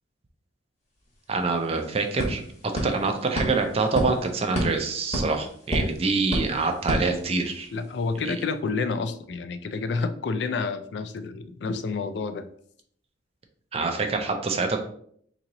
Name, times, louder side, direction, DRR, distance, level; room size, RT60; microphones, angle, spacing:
sound 1, 1.1-1.2 1.4-7.8, equal, 35° left, 1.1 m, -31 dB
voice 1, 1.3-2.4 2.8-7.7 8.2-8.4 13.7-14.8, right 3 dB, 30° right, 5 dB, 0.4 m, -26 dB
voice 2, 7.7-12.5, left 4 dB, 60° left, 10 dB, 0.3 m, -29 dB
3.0 x 2.8 x 3.8 m, 0.63 s
head